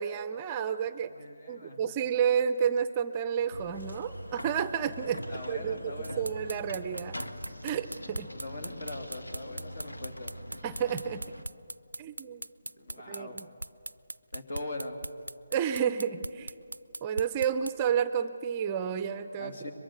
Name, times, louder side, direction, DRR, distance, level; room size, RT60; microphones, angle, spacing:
voice 1, 0.0-1.1 1.5-7.2 7.6-8.3 10.6-11.2 12.0-12.5 13.1-13.5 15.5-16.5 17.0-19.7, right 8 dB, 20° right, 12 dB, 0.6 m, -31 dB
voice 2, 1.0-1.8 5.3-6.3 8.1-10.4 12.8-13.4 14.3-15.0 19.4-19.7, left 2 dB, 55° left, 5 dB, 2.8 m, -41 dB
sound 1, 3.5-11.4, equal, 90° left, 1.6 m, -43 dB
sound 2, 6.0-17.7, right 2 dB, 80° right, 0.4 m, -39 dB
23.0 x 22.5 x 6.6 m, 2.6 s
figure-of-eight pair, 155°, 0 cm